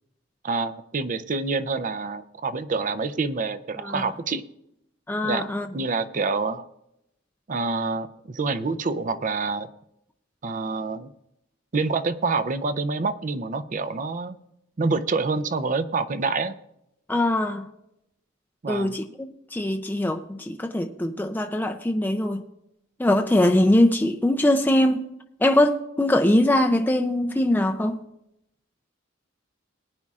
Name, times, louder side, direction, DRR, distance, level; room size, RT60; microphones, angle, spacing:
voice 1, 0.4-4.4 5.2-6.7 7.5-9.7 10.4-11.1 11.7-14.4 14.8-16.6 18.6-18.9, right 4 dB, 40° right, 0.5 m, -27 dB
voice 2, 5.1-5.7 17.1-17.7 18.7-22.4 23.0-25.1 25.4-28.0, left 1 dB, 10° left, 0.5 m, -22 dB
19.0 x 9.7 x 2.4 m
head